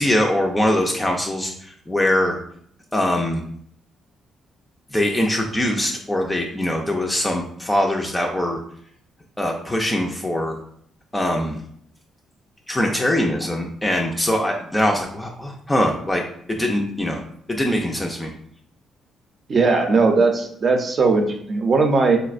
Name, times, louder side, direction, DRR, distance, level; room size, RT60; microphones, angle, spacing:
voice 1, 0.0-2.4 2.9-3.4 4.9-8.6 9.4-10.6 11.1-11.6 12.7-16.2 16.5-17.2 17.5-18.3, left 1 dB, 10° left, 1 dB, 0.4 m, -22 dB
voice 2, 19.5-22.2, right 4 dB, 45° right, 4 dB, 0.6 m, -18 dB
4.0 x 2.1 x 2.4 m, 0.66 s
cardioid pair, 90°, 0 cm